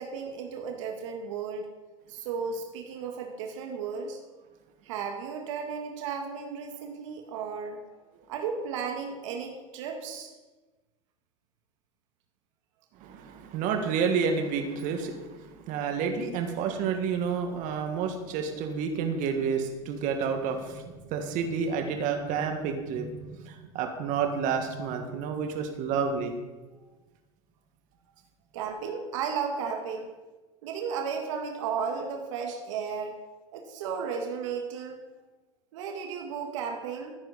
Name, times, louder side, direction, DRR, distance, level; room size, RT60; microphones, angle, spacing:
voice 1, 0.0-1.7 2.1-4.2 4.8-8.0 8.3-10.3 26.7-26.9 28.5-30.1 30.6-33.1 33.5-35.0 35.7-37.2, right 6 dB, 75° right, 3 dB, 1.8 m, -34 dB
voice 2, 13.0-26.3, right 6 dB, 55° right, 4 dB, 1.9 m, -30 dB
15.0 x 9.7 x 4.2 m, 1.2 s
hypercardioid pair, 95°, 16 cm